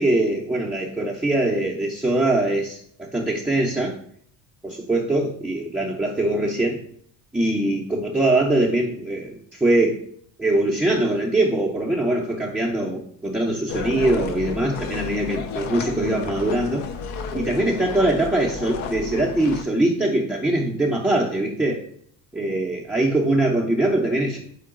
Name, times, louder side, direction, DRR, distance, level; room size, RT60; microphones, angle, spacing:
voice 1, 0.0-4.0 4.6-6.8 7.3-10.0 10.4-16.9 17.3-21.8 22.3-24.4, right 1 dB, 5° right, -3 dB, 0.4 m, -22 dB
sound 1, 13.7-19.6, left 6 dB, 80° left, 0.6 m, -32 dB
3.8 x 3.7 x 3.6 m, 0.63 s
cardioid pair, 105°, 48 cm